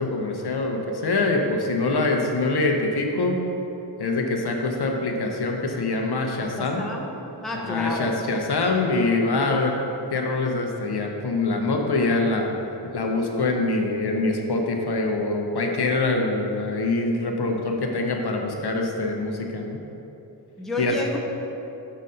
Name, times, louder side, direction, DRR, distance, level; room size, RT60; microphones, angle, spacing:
voice 1, 0.0-3.4 4.0-6.8 7.6-9.8 10.1-12.5 12.9-19.8 20.8-21.0, left 3 dB, 60° left, 2 dB, 0.7 m, -24 dB
voice 2, 6.6-7.1 7.4-8.1 20.6-21.2, left 1 dB, ahead, -1 dB, 0.6 m, -30 dB
6.3 x 4.0 x 5.4 m, 3.0 s
wide cardioid pair, 100°, 45 cm